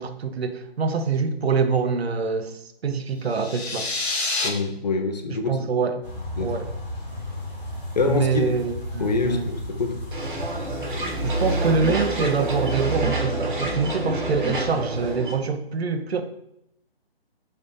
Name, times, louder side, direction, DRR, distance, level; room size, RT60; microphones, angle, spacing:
voice 1, 0.0-3.9 5.5-6.0 6.4-6.7 8.0-9.5 11.2-16.2, right 5 dB, 75° right, 8 dB, 0.6 m, -25 dB
sound 1, 3.2-4.5, left 2 dB, 85° left, 1.1 m, -27 dB
voice 2, 4.4-5.6 6.4-6.6 8.0-8.5 9.0-10.0, left 3 dB, 45° left, 5 dB, 0.4 m, -25 dB
sound 2, 6.0-15.2, right 1 dB, 20° left, 1.3 m, -32 dB
sound 3, 10.1-15.3, right 2 dB, 50° right, 1.1 m, -29 dB
3.5 x 2.6 x 3.8 m, 0.79 s
figure-of-eight pair, 150°, 31 cm